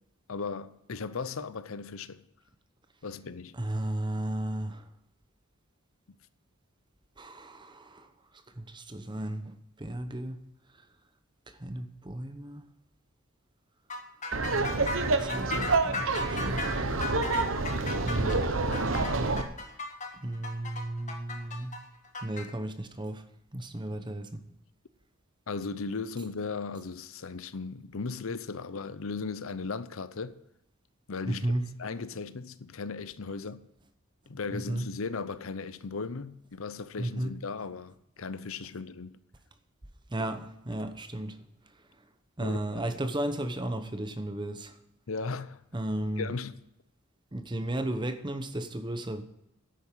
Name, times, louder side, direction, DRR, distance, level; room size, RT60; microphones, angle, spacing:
voice 1, 0.3-2.2 3.0-3.5 25.5-30.3 31.1-31.5 31.8-33.7 34.3-39.2 42.4-42.6 45.1-45.6 46.2-46.5, left 4 dB, 70° left, 0.7 m, -37 dB
voice 2, 3.5-4.9 7.2-8.1 8.6-10.4 11.5-12.7 15.0-16.7 18.0-18.5 20.2-21.8 22.2-23.2 23.5-24.4 31.2-31.7 34.5-34.9 37.0-37.4 40.1-41.4 42.4-44.8 45.7-46.4 47.3-49.2, right 1 dB, 20° right, 0.9 m, -34 dB
sound 1, 13.9-22.5, left 2 dB, 35° left, 1.6 m, -37 dB
Laughter, 14.3-19.4, right 3 dB, 65° right, 1.1 m, -28 dB
10.5 x 8.7 x 7.3 m
head